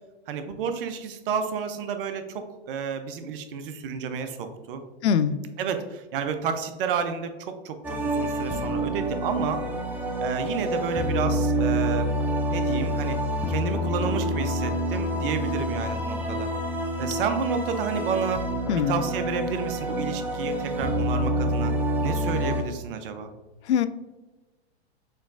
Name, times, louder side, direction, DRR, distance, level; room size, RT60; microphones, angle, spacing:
voice 1, 0.3-4.8 5.6-9.6 10.2-12.1 12.5-13.2 13.5-16.5 17.0-18.4 18.9-21.8 22.0-23.3, right 6 dB, 55° right, 8 dB, 0.7 m, -30 dB
voice 2, 5.0-5.4 18.7-19.0 23.7-23.9, left 8 dB, 75° left, 13 dB, 0.5 m, -22 dB
sound 1, 7.8-22.6, equal, 5° right, 0.4 m, -27 dB
6.5 x 3.1 x 2.6 m, 1.1 s
hypercardioid pair, 110°, 33 cm